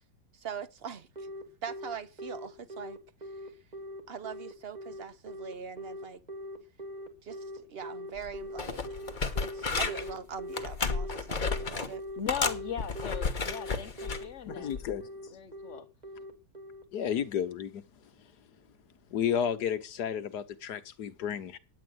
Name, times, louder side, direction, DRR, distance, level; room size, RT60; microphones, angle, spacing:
voice 1, 0.3-1.3 1.6-3.0 3.4-3.5 4.1-6.2 7.2-8.8 9.3-12.0, right 6 dB, 50° right, 0.7 m, -42 dB
Telephone, 1.2-17.3, equal, 25° right, 2.6 m, -41 dB
sound 1, 8.2-8.3 8.6-10.1 10.5-11.9 12.3-14.2 14.7-14.9, left 4 dB, 30° left, 1.2 m, -32 dB
voice 2, 12.2-14.7 15.3-15.9, left 9 dB, 50° left, 1.0 m, -38 dB
voice 3, 14.5-15.1 16.9-17.8 19.1-21.6, left 8 dB, 65° left, 1.5 m, -32 dB
10.0 x 8.6 x 7.9 m
omnidirectional pair, 1.9 m